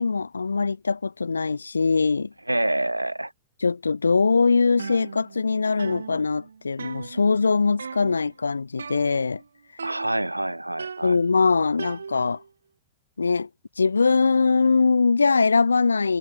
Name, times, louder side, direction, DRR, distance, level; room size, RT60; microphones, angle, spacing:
voice 1, 0.0-2.3 3.6-9.4 11.0-12.4 13.2-13.5 13.8-16.2, left 4 dB, 80° left, 2.7 m, -22 dB
voice 2, 2.5-3.3 9.8-11.2, right 1 dB, 90° right, 1.4 m, -26 dB
sound 1, 4.8-5.5 5.8-7.5 7.8-8.3 8.8-9.5 9.8-10.4 10.8-12.5, right 6 dB, 75° right, 1.8 m, -38 dB
figure-of-eight pair, 100°, 0 cm